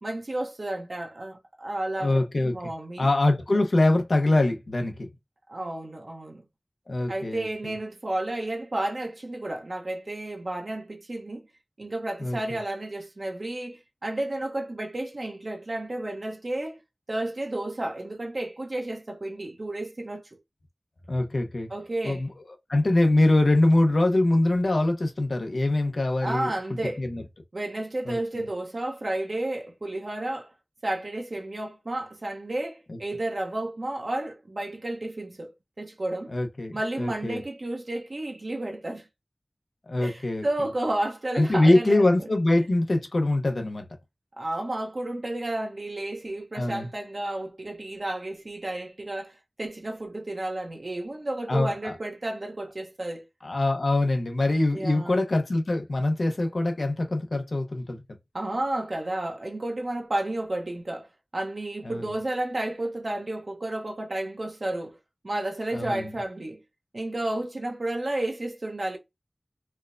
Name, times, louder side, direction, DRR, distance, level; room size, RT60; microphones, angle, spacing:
voice 1, 0.0-3.1 3.5-3.6 5.5-6.4 7.1-11.4 11.8-16.8 17.1-20.2 21.7-22.3 26.2-27.0 27.5-30.5 30.8-36.3 36.7-39.1 40.0-42.3 44.4-53.2 54.7-55.3 58.3-65.0 65.2-66.6 66.9-69.0, right 1 dB, 60° right, 0.8 m, -32 dB
voice 2, 2.0-2.6 3.0-5.1 6.9-7.5 12.2-12.4 21.1-21.7 22.0-22.3 22.7-26.5 27.0-27.2 28.1-28.2 32.9-33.0 36.3-37.4 39.9-40.5 41.3-43.9 46.5-46.9 51.5-51.9 53.4-58.0 61.8-62.0 65.7-66.1, left 2 dB, 70° left, 0.7 m, -23 dB
4.4 x 2.2 x 2.5 m
wide cardioid pair, 50°, 0 cm